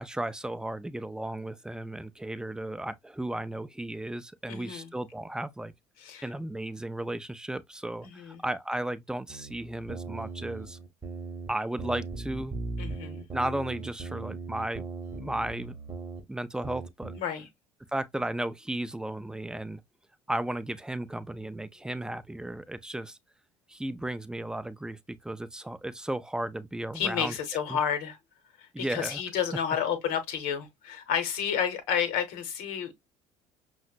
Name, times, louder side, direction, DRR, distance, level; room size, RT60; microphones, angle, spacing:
voice 1, 0.0-5.7 6.2-10.8 11.5-12.6 13.3-14.9 15.2-15.7 16.3-17.1 17.9-19.8 20.3-23.2 23.7-27.4 27.7-27.8 28.7-29.2, right 1 dB, 5° right, 0.3 m, -34 dB
voice 2, 4.5-4.9 6.0-6.2 8.0-8.4 12.8-13.2 17.1-17.5 26.9-28.2 28.6-32.9, left 8 dB, 60° left, 0.8 m, -31 dB
sound 1, 9.3-11.5 11.8-16.2 16.6-17.2, right 4 dB, 20° right, 0.9 m, -39 dB
5.5 x 2.1 x 2.3 m
figure-of-eight pair, 60°, 16 cm